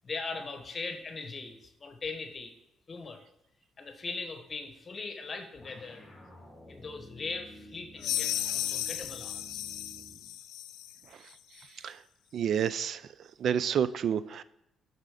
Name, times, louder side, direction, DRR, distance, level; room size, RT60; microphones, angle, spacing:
voice 1, 0.0-2.5 2.9-3.2 3.8-6.0 6.7-9.6, left 4 dB, 40° left, 6 dB, 1.1 m, -40 dB
sound 1, 5.6-10.3, equal, 10° left, 1.8 m, -51 dB
sound 2, 8.0-11.0, left 12 dB, 90° left, 0.4 m, -34 dB
voice 2, 12.3-13.0 13.4-14.4, right 8 dB, 65° right, 16 dB, 0.3 m, -29 dB
6.1 x 5.5 x 5.0 m, 0.82 s
cardioid pair, 90°, 0 cm